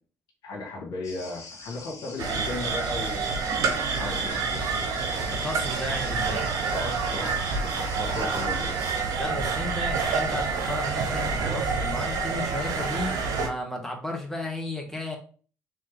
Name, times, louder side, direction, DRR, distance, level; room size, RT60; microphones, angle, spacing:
voice 1, 0.4-3.4 3.8-4.9 6.7-8.7 9.0-9.3, left 2 dB, 65° left, -2 dB, 1.7 m, -36 dB
sound 1, 1.0-9.0, left 3 dB, 45° left, 1.8 m, -44 dB
sound 2, 2.2-13.5, right 4 dB, 65° right, 0.9 m, -28 dB
voice 2, 5.2-6.5 9.2-15.2, left 2 dB, 5° left, 0 dB, 1.5 m, -34 dB
3.7 x 3.2 x 3.5 m, 0.40 s
hypercardioid pair, 55°, 7 cm